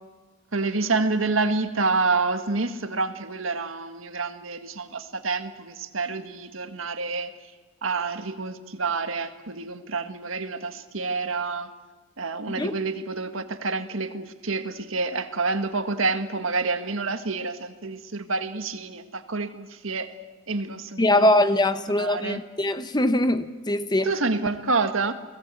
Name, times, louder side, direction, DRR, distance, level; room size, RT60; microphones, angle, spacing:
voice 1, 0.5-7.3 7.8-11.7 12.2-20.1 20.5-21.3 22.0-22.4 24.0-25.1, right 3 dB, 70° right, 1.8 m, -28 dB
voice 2, 21.0-24.1, left 1 dB, 20° left, 1.0 m, -22 dB
29.5 x 19.5 x 8.5 m
head